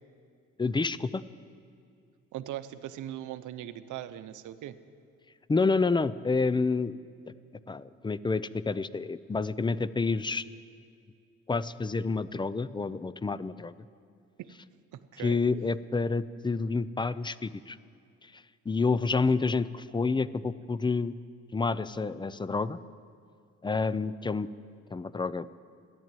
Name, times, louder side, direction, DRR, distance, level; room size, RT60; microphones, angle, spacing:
voice 1, 0.6-1.2 5.5-7.0 7.7-10.4 11.5-13.7 15.2-17.8 18.2-21.1 21.5-22.8 23.6-24.5 24.9-25.5, left 4 dB, 15° left, 17 dB, 0.4 m, -29 dB
voice 2, 2.3-4.8 14.4-14.5 14.9-15.4 20.1-20.5, right 12 dB, 80° right, 12 dB, 0.8 m, -40 dB
14.0 x 10.5 x 9.1 m, 2.3 s
cardioid pair, 90°, 30 cm